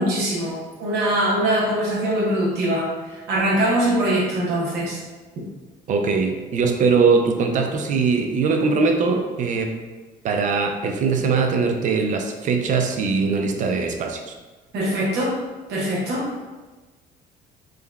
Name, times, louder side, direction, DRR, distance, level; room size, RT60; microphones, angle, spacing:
voice 1, 0.0-5.0 5.4-5.5 14.7-15.3 15.7-16.4, right 1 dB, 80° right, -4 dB, 0.8 m, -22 dB
voice 2, 5.9-9.7 10.2-14.3, right 4 dB, 50° right, 4 dB, 0.4 m, -21 dB
3.6 x 2.1 x 2.3 m, 1.3 s
cardioid pair, 110°, 17 cm